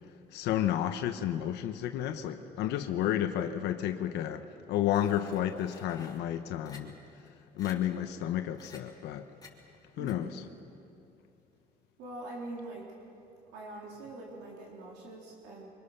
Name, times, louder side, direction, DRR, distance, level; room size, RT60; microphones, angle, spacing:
voice 1, 0.3-7.0 7.5-9.3 10.0-10.3, left 11 dB, 85° left, 7 dB, 1.1 m, -31 dB
sound 1, 4.9-6.2 6.7-6.8 7.3-7.4 7.6-7.7 8.5-8.8 9.4-9.5 10.1-10.2, left 4 dB, 20° left, 3.3 m, -51 dB
voice 2, 10.0-10.5 12.0-12.9 13.5-15.7, right 2 dB, 90° right, -3 dB, 4.0 m, -43 dB
25.0 x 24.0 x 6.8 m, 2.6 s
cardioid pair, 110°, 17 cm